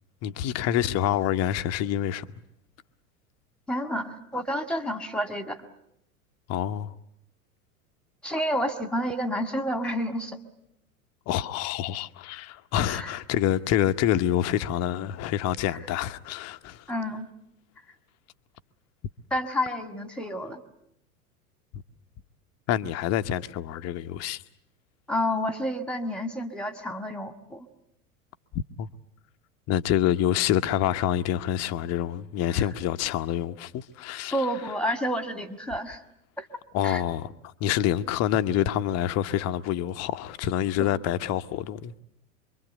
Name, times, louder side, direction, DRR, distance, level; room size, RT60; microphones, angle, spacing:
voice 1, 0.2-2.3 6.5-6.9 11.3-16.8 22.7-24.4 28.8-28.9 29.7-34.3 36.7-37.3 37.6-42.0, left 11 dB, 35° left, 1.0 m, -27 dB
voice 2, 3.7-5.6 8.2-10.4 12.9-13.2 16.9-17.3 19.3-20.6 25.1-27.7 32.5-32.7 34.3-36.0 36.4-36.5 36.8-37.0 40.8-40.9, equal, ahead, 2.0 m, -30 dB
25.5 x 23.5 x 8.1 m
figure-of-eight pair, 90°, 43 cm